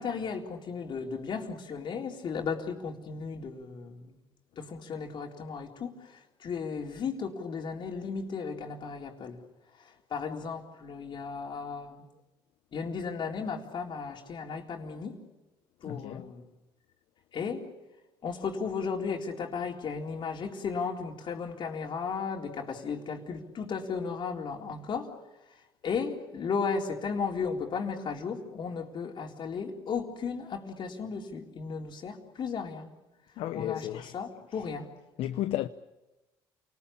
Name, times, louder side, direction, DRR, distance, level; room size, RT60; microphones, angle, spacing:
voice 1, 0.0-4.1 4.6-9.4 9.8-12.0 12.7-15.2 15.8-16.4 17.3-17.7 18.2-25.1 25.8-32.9 33.5-34.9, left 5 dB, 50° left, 4.0 m, -35 dB
voice 2, 15.8-16.3 33.4-34.1 35.2-35.7, left 13 dB, 70° left, 0.8 m, -33 dB
28.5 x 20.0 x 8.7 m
supercardioid pair, 75°, 10 cm